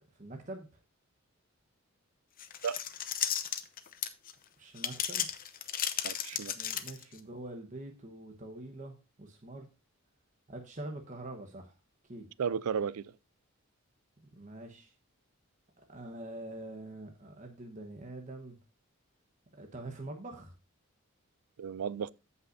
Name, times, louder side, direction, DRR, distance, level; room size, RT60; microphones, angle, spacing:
voice 1, 0.1-0.8 4.6-5.3 6.5-9.7 10.5-11.7 12.1-12.3 14.2-14.9 15.8-18.6 19.5-20.5, right 1 dB, 35° right, 1.1 m, -45 dB
sound 1, 2.4-4.3 4.8-7.2, left 10 dB, 40° left, 0.7 m, -34 dB
voice 2, 6.0-6.5 12.4-13.1 21.6-22.1, right 6 dB, 85° right, 0.4 m, -34 dB
14.0 x 5.5 x 2.6 m
head